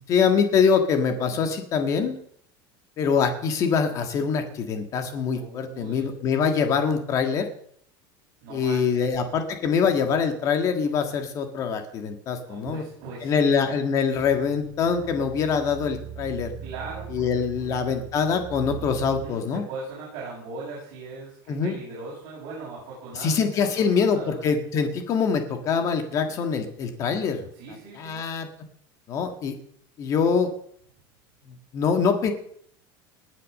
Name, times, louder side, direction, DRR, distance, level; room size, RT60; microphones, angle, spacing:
voice 1, 0.1-2.2 3.0-7.5 8.5-12.8 13.2-16.5 17.1-19.6 21.5-21.8 23.2-27.5 28.0-28.5 29.1-29.5 30.0-30.5 31.5-32.3, left 6 dB, 30° left, 6 dB, 1.8 m, -24 dB
voice 2, 5.4-6.1 8.4-9.1 12.4-13.7 16.6-17.2 17.5-17.7 19.0-23.7 23.9-24.5 27.5-28.2, right 3 dB, 40° right, -6 dB, 7.1 m, -40 dB
sound 1, 14.1-19.3, right 9 dB, 60° right, 4.2 m, -40 dB
19.5 x 8.4 x 6.6 m, 0.65 s
supercardioid pair, 175°, 12 cm